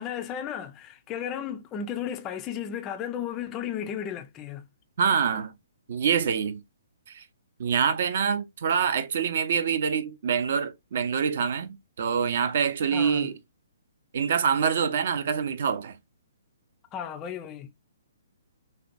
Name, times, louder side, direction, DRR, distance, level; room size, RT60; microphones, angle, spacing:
voice 1, 0.0-4.6 12.9-13.3 16.9-17.7, left 8 dB, 20° left, 0.3 m, -34 dB
voice 2, 5.0-5.5 5.9-6.6 7.1-7.2 7.6-13.4 14.1-16.0, right 6 dB, 45° right, 0.5 m, -25 dB
4.1 x 2.2 x 2.5 m
figure-of-eight pair, 125°, 0 cm